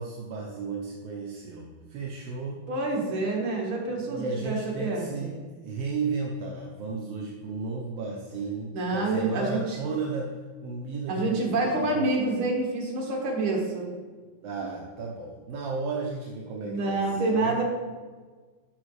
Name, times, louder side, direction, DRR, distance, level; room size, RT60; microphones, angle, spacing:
voice 1, 0.0-2.6 4.1-5.4 5.6-10.3 10.6-12.0 14.4-17.6, right 4 dB, 65° right, -2 dB, 1.6 m, -34 dB
voice 2, 2.7-5.3 8.7-9.8 11.1-13.9 16.6-17.6, right 2 dB, 50° right, -1 dB, 2.3 m, -27 dB
10.5 x 7.1 x 3.3 m, 1.4 s
omnidirectional pair, 3.4 m